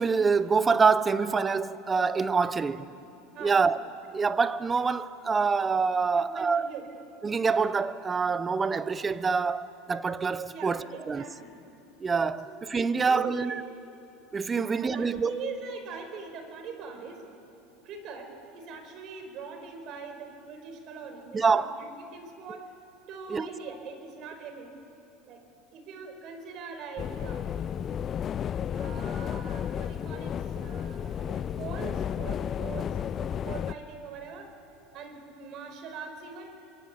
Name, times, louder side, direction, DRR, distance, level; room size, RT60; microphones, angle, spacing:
voice 1, 0.0-2.9 3.4-3.8 4.1-6.7 7.2-11.2 12.0-13.5 14.3-15.3 21.3-21.8 23.3-23.5, right 5 dB, 25° right, 1.0 m, -26 dB
voice 2, 3.3-3.7 6.1-6.9 10.5-11.5 12.4-12.6 12.9-13.6 14.5-17.2 17.8-22.7 23.1-24.7 25.2-25.4 25.7-27.6 28.7-34.6 34.9-36.6, right 5 dB, 50° right, 5.1 m, -42 dB
sound 1, 27.0-33.7, left 8 dB, 40° left, 0.6 m, -32 dB
25.0 x 24.5 x 8.6 m
hypercardioid pair, 95°, 0 cm